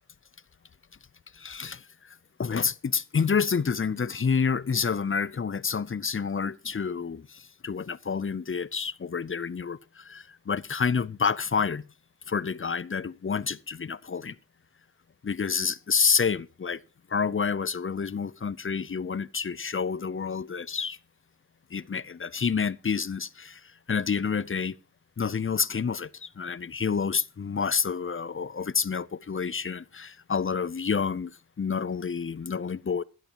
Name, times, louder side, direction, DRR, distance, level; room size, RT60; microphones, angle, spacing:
voice 1, 1.3-11.8 12.3-14.4 15.2-16.8 17.1-21.0 21.7-24.8 25.2-31.3 31.6-33.0, left 6 dB, 35° left, 0.5 m, -29 dB
15.0 x 12.5 x 2.9 m
cardioid pair, 50°, 35 cm